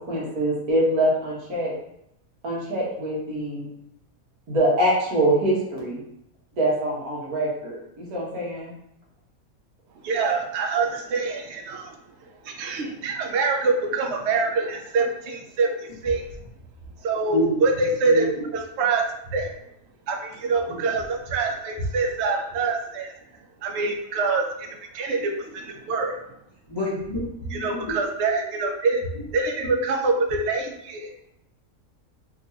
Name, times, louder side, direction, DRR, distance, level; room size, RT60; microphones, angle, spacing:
voice 1, 0.1-1.7 2.4-3.7 4.5-6.0 6.6-8.7, right 1 dB, 85° right, -5 dB, 1.7 m, -24 dB
voice 2, 10.0-12.0 12.4-16.2 17.0-19.5 20.1-23.1 23.6-26.2 27.5-29.0 29.3-31.1, right 3 dB, 65° right, 3 dB, 0.7 m, -25 dB
voice 3, 17.3-17.6 18.0-18.4 20.7-20.8 26.7-27.9, equal, 25° left, -7 dB, 0.6 m, -28 dB
3.6 x 2.9 x 2.7 m, 0.77 s
omnidirectional pair, 1.5 m